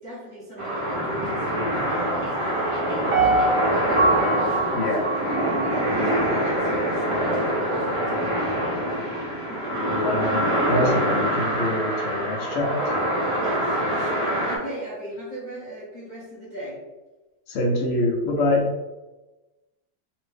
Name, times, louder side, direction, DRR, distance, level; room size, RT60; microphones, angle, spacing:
voice 1, 0.0-9.7 13.4-16.8 17.9-18.0 18.3-18.4, equal, 30° left, -9 dB, 1.0 m, -38 dB
sound 1, 0.6-14.6, equal, 40° right, 0.4 m, -25 dB
Piano, 3.1-6.2 6.6-6.7, right 3 dB, 60° right, 1.1 m, -24 dB
voice 2, 9.9-12.9 17.5-18.7, left 1 dB, 65° left, 0 dB, 0.7 m, -25 dB
2.9 x 2.6 x 3.4 m, 1.1 s
omnidirectional pair, 2.0 m